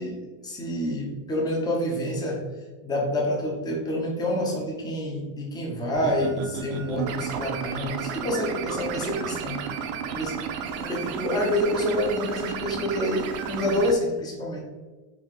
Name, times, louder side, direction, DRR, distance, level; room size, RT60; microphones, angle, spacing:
voice 1, 0.0-2.5 2.8-10.4 10.7-14.6, left 1 dB, 10° left, -1 dB, 0.4 m, -28 dB
sound 1, 5.9-13.9, right 7 dB, 70° right, 0.5 m, -33 dB
3.7 x 2.4 x 3.1 m, 1.3 s
supercardioid pair, 145°, 43 cm